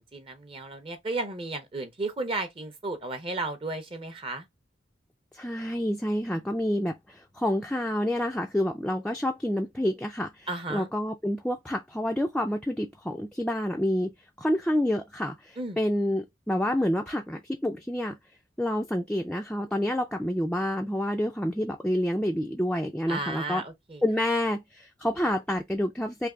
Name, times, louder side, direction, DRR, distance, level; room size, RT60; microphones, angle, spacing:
voice 1, 0.0-4.5 10.5-10.9 15.6-15.8 23.1-24.0, right 2 dB, 30° right, 0.6 m, -34 dB
voice 2, 5.3-14.1 14.4-18.2 18.6-23.6 24.0-26.3, left 1 dB, 5° left, 0.4 m, -28 dB
3.3 x 2.6 x 3.7 m
head